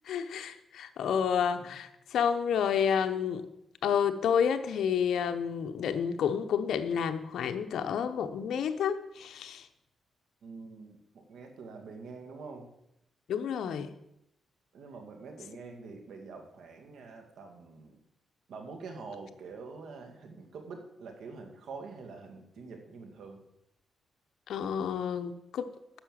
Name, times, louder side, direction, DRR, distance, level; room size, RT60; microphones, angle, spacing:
voice 1, 0.1-3.5 3.8-9.7 13.3-13.9 24.5-25.7, left 7 dB, 80° left, 9 dB, 1.0 m, -30 dB
voice 2, 10.4-12.7 14.7-18.0 18.5-23.4, right 4 dB, 80° right, 4 dB, 2.2 m, -46 dB
9.9 x 7.1 x 7.5 m, 0.82 s
cardioid pair, 105°, 0 cm